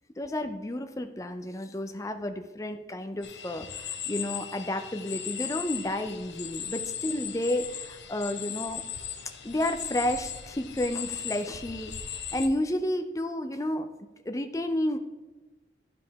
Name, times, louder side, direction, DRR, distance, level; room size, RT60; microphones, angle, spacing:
voice 1, 0.2-8.8 9.4-13.9 14.2-15.0, left 1 dB, 20° left, 7 dB, 0.5 m, -31 dB
sound 1, 3.2-12.5, left 9 dB, 85° left, 0.7 m, -38 dB
11.5 x 4.9 x 3.5 m, 1.2 s
head